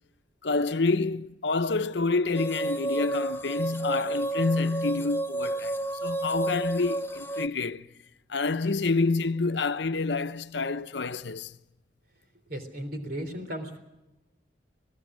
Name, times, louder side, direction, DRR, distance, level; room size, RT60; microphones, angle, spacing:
voice 1, 0.4-7.9 8.3-11.6, left 3 dB, 75° left, 0.8 m, -28 dB
sound 1, 2.3-7.5, right 2 dB, 10° left, 0.7 m, -31 dB
voice 2, 12.5-13.8, equal, 55° right, 3.7 m, -35 dB
26.5 x 17.5 x 6.3 m
head